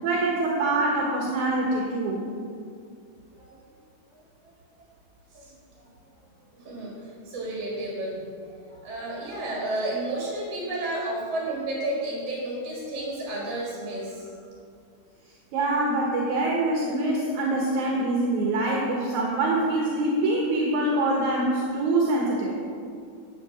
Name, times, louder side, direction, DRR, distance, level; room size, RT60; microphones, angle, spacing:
voice 1, 0.0-2.2 15.5-22.6, right 2 dB, 65° right, -2 dB, 2.2 m, -24 dB
voice 2, 6.6-14.3, right 1 dB, 50° right, -4 dB, 2.5 m, -32 dB
10.5 x 5.7 x 6.8 m, 2.3 s
omnidirectional pair, 4.4 m